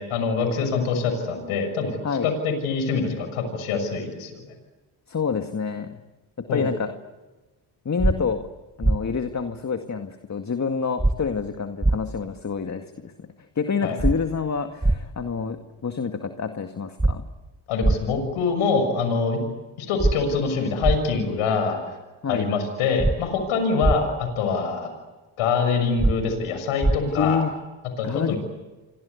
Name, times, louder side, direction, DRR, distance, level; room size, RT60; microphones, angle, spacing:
voice 1, 0.0-2.0 2.2-4.4 6.5-6.6 13.8-14.0 17.7-19.4 19.8-21.8 22.3-24.9 25.4-27.4 28.0-28.4, left 5 dB, 85° left, 7 dB, 6.6 m, -24 dB
voice 2, 5.1-6.0 6.4-7.0 7.9-8.5 8.8-13.3 13.6-17.2 22.2-22.5 27.1-27.6 28.0-28.3, left 5 dB, 35° left, 7 dB, 2.1 m, -27 dB
sound 1, 8.0-8.1 8.8-9.0 11.0-11.1 11.8-12.0 14.0-14.1 14.8-15.0 17.0-17.1 17.8-18.0 20.0-20.1 20.8-21.0 23.0-23.1 23.8-24.0 26.0-26.1 26.8-27.0, right 2 dB, 10° right, 1.7 m, -19 dB
28.0 x 24.5 x 8.4 m, 1.2 s
supercardioid pair, 70°, 49 cm